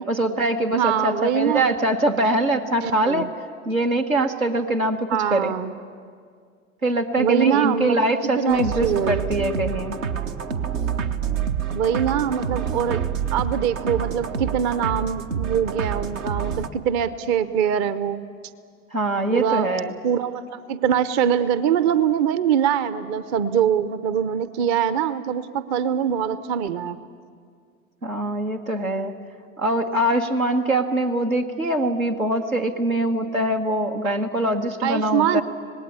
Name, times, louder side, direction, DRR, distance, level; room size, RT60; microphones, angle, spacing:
voice 1, 0.1-3.3 3.6-5.6 6.8-10.0 18.9-19.9 28.0-29.1 29.6-35.4, right 1 dB, 85° right, 3 dB, 1.4 m, -23 dB
voice 2, 0.7-1.8 2.8-3.3 5.1-5.7 7.2-8.0 8.4-9.2 11.7-13.0 13.3-18.2 19.3-19.7 20.0-27.0 34.8-35.4, right 8 dB, 45° right, 14 dB, 0.9 m, -23 dB
sound 1, 8.5-16.7, right 7 dB, 70° right, 1.1 m, -27 dB
26.0 x 19.0 x 8.6 m, 2.1 s
figure-of-eight pair, 70°, 40 cm